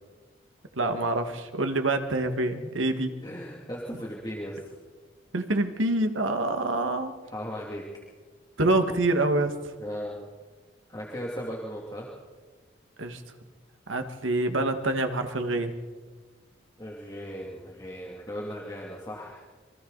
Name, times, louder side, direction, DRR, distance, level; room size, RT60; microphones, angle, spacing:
voice 1, 0.8-3.1 5.3-7.1 8.6-9.5 13.0-13.2 13.9-15.8, right 2 dB, 90° right, 7 dB, 1.8 m, -26 dB
voice 2, 3.2-4.7 7.3-7.8 9.8-10.2 10.9-12.1 16.8-19.5, equal, 20° left, -3 dB, 2.6 m, -37 dB
27.0 x 24.0 x 4.1 m, 1.4 s
head